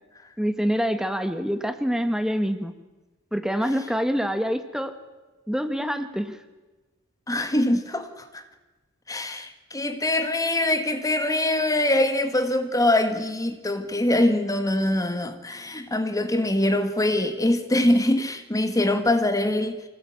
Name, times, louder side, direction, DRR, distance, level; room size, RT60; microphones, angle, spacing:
voice 1, 0.4-2.7 3.3-4.9 5.5-6.4, equal, 5° right, 1.6 m, -26 dB
voice 2, 7.3-8.4 9.1-19.8, left 1 dB, 15° left, 1.5 m, -23 dB
25.5 x 19.0 x 8.8 m
head